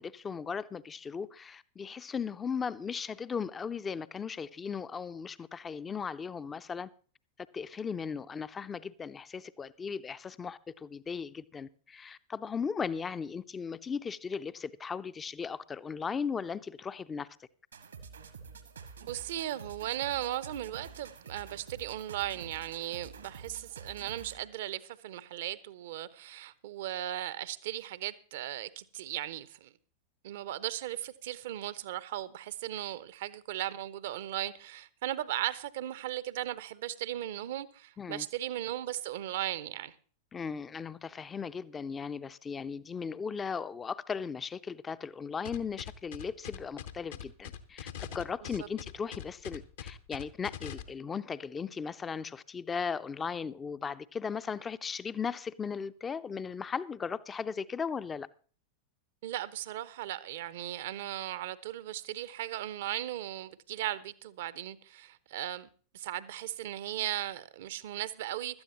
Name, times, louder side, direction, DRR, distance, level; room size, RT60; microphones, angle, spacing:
voice 1, 0.0-6.9 7.5-17.3 38.0-38.3 40.3-58.3, left 6 dB, 20° left, 0.5 m, -37 dB
sound 1, 17.7-24.5, right 5 dB, 75° right, 1.3 m, -48 dB
voice 2, 19.0-29.7 30.2-39.9 48.4-48.5 59.2-65.7 65.9-68.6, right 13 dB, 55° right, 0.7 m, -37 dB
sound 2, 45.4-50.8, left 9 dB, 60° left, 0.9 m, -42 dB
16.5 x 12.5 x 3.0 m
figure-of-eight pair, 90°, 0 cm